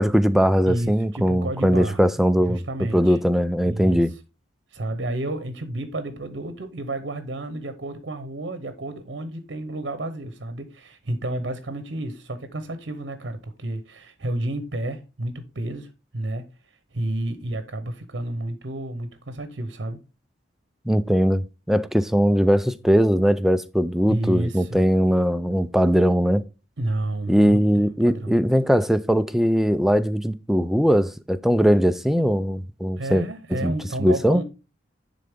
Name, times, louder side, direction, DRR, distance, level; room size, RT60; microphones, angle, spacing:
voice 1, 0.0-2.6 2.9-4.1 20.9-26.4 27.3-33.2 33.6-33.7 34.0-34.4, equal, ahead, 0.3 m, -20 dB
voice 2, 0.7-2.1 2.4-3.2 3.6-4.2 4.7-20.0 24.1-24.9 26.8-28.4 33.0-34.4, right 1 dB, 65° right, 0.8 m, -31 dB
10.0 x 3.8 x 3.6 m
head